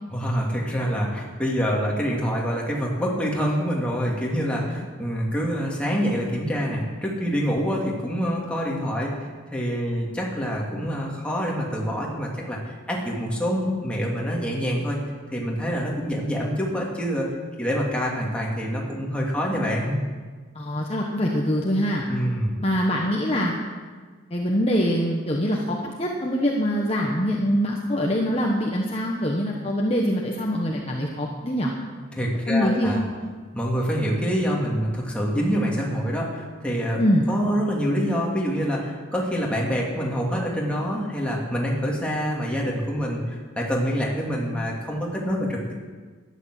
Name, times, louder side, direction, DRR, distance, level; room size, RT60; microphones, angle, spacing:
voice 1, 0.1-15.0 15.3-20.0 22.1-22.5 32.1-33.0 33.5-37.0 37.3-45.7, equal, 5° left, -3 dB, 2.6 m, -26 dB
voice 2, 20.5-22.0 22.6-23.5 24.3-31.7 32.5-33.0 37.0-37.3, equal, 30° left, -1 dB, 1.3 m, -24 dB
12.5 x 10.5 x 7.7 m, 1.5 s
head